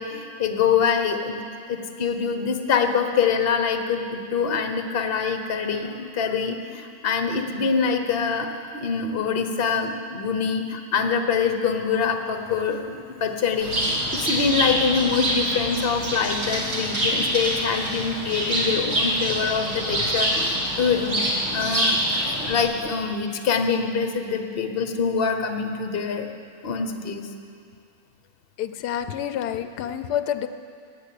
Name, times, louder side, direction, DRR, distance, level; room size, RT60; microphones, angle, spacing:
voice 1, 0.0-1.4 1.7-26.3 26.6-27.3, left 6 dB, 40° left, 6 dB, 1.1 m, -25 dB
Bird, 13.6-22.6, right 1 dB, 75° right, 3.0 m, -25 dB
voice 2, 28.6-30.5, left 10 dB, 85° left, 10 dB, 1.2 m, -28 dB
14.5 x 9.6 x 8.4 m, 2.3 s
omnidirectional pair, 1.7 m